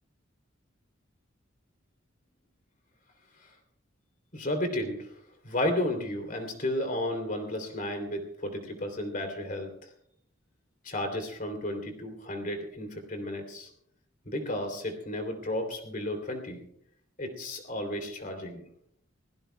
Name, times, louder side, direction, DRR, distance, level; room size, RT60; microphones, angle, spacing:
voice 1, 4.3-5.1 5.4-9.7 10.8-13.7 14.2-16.6 17.2-18.6, left 1 dB, 45° left, 5 dB, 3.1 m, -33 dB
24.5 x 16.5 x 2.3 m, 0.70 s
head